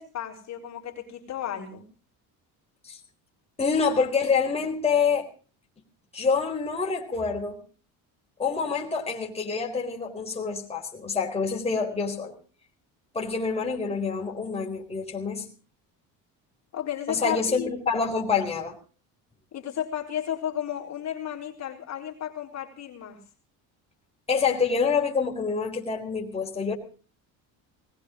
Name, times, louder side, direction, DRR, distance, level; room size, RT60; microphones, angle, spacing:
voice 1, 0.0-1.9 16.7-17.7 19.5-23.2, left 10 dB, 45° left, 0 dB, 3.9 m, -33 dB
voice 2, 3.6-5.3 6.1-7.6 8.4-12.3 13.1-15.5 17.1-18.8 24.3-26.7, left 5 dB, 15° left, -1 dB, 4.0 m, -26 dB
20.0 x 19.0 x 3.8 m, 0.39 s
cardioid pair, 130°, 36 cm